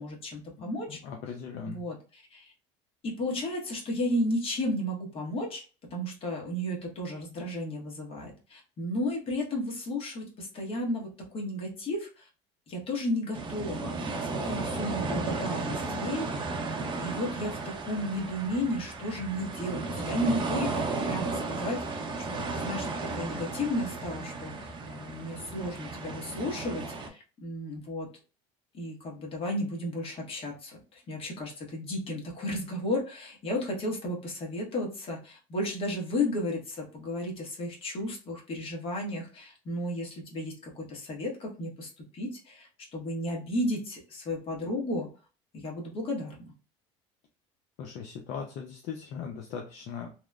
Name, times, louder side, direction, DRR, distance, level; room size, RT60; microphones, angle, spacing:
voice 1, 0.0-1.0 1.6-2.5 3.0-5.6 5.9-12.3 12.7-16.5 17.0-17.6 17.8-22.0 22.3-22.9 23.2-28.1 28.7-45.1 45.5-46.5, left 1 dB, 40° left, -1 dB, 1.1 m, -33 dB
voice 2, 0.9-1.8 47.8-50.1, left 6 dB, 60° left, 3 dB, 0.5 m, -39 dB
sound 1, 13.3-27.1, right 3 dB, 35° right, 0.6 m, -34 dB
2.9 x 2.0 x 2.3 m, 0.35 s
cardioid pair, 120°, 14 cm